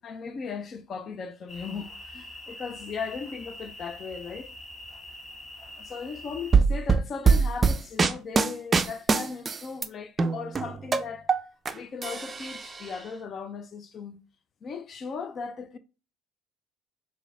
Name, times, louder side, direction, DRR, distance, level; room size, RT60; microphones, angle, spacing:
voice 1, 0.0-4.5 5.7-11.3 11.7-14.2 14.6-15.8, left 5 dB, 45° left, 0.4 m, -37 dB
sound 1, 1.5-6.6, left 1 dB, 30° left, 1.2 m, -44 dB
sound 2, 6.5-9.9 10.2-11.7 12.0-12.9, right 5 dB, 30° right, 0.4 m, -23 dB
5.6 x 2.1 x 2.3 m
hypercardioid pair, 60°, 0 cm